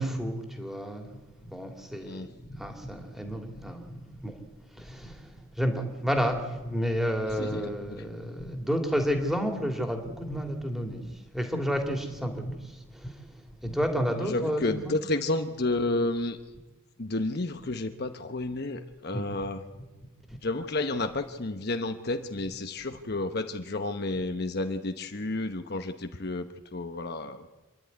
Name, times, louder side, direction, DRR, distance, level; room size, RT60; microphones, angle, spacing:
voice 1, 0.0-4.4 4.7-14.9 19.1-19.3 20.3-20.4, equal, ahead, 4 dB, 2.5 m, -31 dB
voice 2, 14.2-16.4 17.0-19.6 20.4-26.4 26.7-27.5, left 2 dB, 55° left, 7 dB, 1.0 m, -31 dB
27.5 x 11.0 x 9.5 m, 1.2 s
head